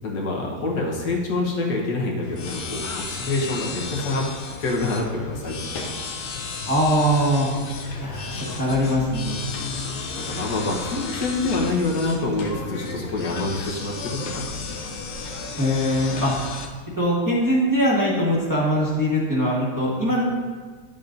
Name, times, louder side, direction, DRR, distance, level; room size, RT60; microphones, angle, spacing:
voice 1, 0.0-4.3 4.6-5.9 9.5-14.8, left 2 dB, 80° left, -2 dB, 1.7 m, -27 dB
sound 1, 2.2-16.7, left 4 dB, 60° left, 1.0 m, -34 dB
voice 2, 6.7-7.5 8.0-9.5 15.6-16.3 17.0-20.2, equal, 15° right, -6 dB, 1.3 m, -22 dB
10.0 x 7.1 x 2.6 m, 1.5 s
omnidirectional pair, 1.7 m